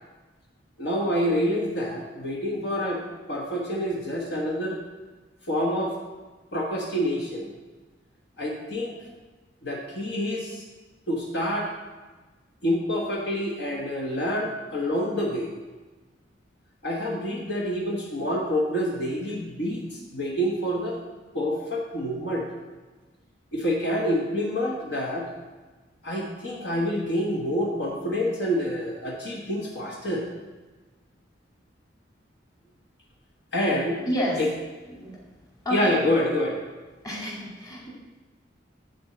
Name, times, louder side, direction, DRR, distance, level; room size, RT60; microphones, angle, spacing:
voice 1, 0.8-3.0 3.3-4.8 5.5-5.9 6.5-7.5 8.4-8.9 9.6-10.6 11.1-11.7 12.6-15.5 16.8-21.0 21.3-22.5 23.5-25.3 26.0-30.2 33.5-34.0 34.4-34.5 35.7-36.6, equal, 65° left, -2 dB, 1.4 m, -27 dB
voice 2, 34.1-34.4 35.0-35.1 35.6-36.0 37.0-37.9, equal, 20° left, -4 dB, 2.4 m, -29 dB
10.5 x 4.5 x 7.8 m, 1.2 s
head